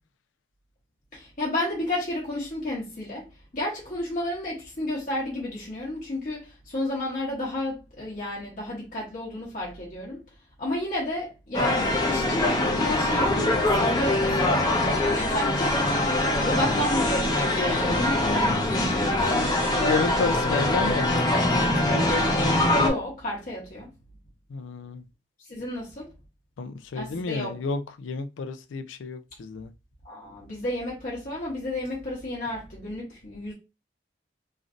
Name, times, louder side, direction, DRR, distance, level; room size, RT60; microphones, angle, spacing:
voice 1, 1.1-3.3 3.5-10.2 10.6-16.0 16.4-19.6 22.7-23.9 25.4-26.1 26.9-27.6 30.0-33.5, left 1 dB, 45° left, 0.9 m, -32 dB
sound 1, 11.5-22.9, left 1 dB, 20° left, 0.5 m, -23 dB
voice 2, 19.3-21.3 24.5-25.0 26.6-29.7, left 4 dB, 90° left, 0.4 m, -31 dB
3.1 x 2.5 x 2.4 m
head